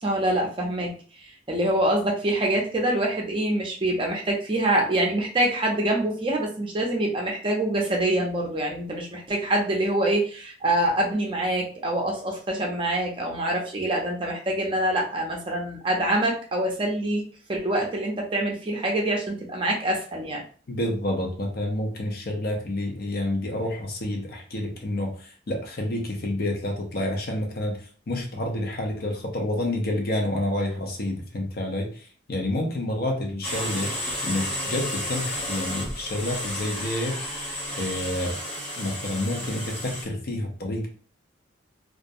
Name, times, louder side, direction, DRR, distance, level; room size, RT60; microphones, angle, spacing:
voice 1, 0.0-0.9 1.2-17.2 17.5-20.4, right 1 dB, 25° right, 0 dB, 0.5 m, -25 dB
voice 2, 20.7-27.8 28.1-31.9 32.3-33.9 34.2-37.2 37.8-38.3 38.8-40.9, left 1 dB, 50° left, 1 dB, 0.6 m, -29 dB
sound 1, 33.4-40.0, left 1 dB, 5° left, 0.8 m, -32 dB
2.3 x 2.1 x 2.6 m, 0.42 s
head